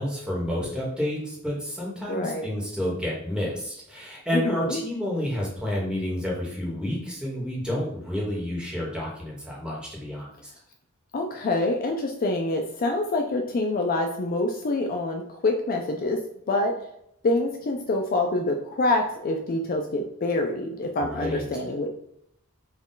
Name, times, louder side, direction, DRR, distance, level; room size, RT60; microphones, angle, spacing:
voice 1, 0.0-10.5 21.0-21.4, left 1 dB, 5° right, -4 dB, 1.2 m, -30 dB
voice 2, 2.1-2.4 4.3-4.8 11.1-16.2 16.5-16.7 17.2-21.9, left 2 dB, 40° left, 3 dB, 0.4 m, -26 dB
4.2 x 2.3 x 3.8 m, 0.77 s
head